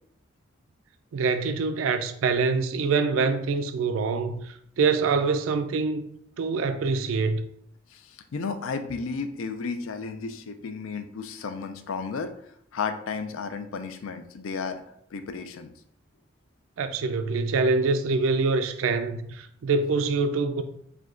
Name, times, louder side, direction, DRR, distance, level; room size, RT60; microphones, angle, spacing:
voice 1, 1.1-6.1 6.4-7.4 16.8-20.6, right 4 dB, 80° right, 0.4 m, -25 dB
voice 2, 7.9-14.8 15.1-15.7, left 5 dB, 85° left, 0.4 m, -33 dB
4.9 x 2.2 x 3.7 m
head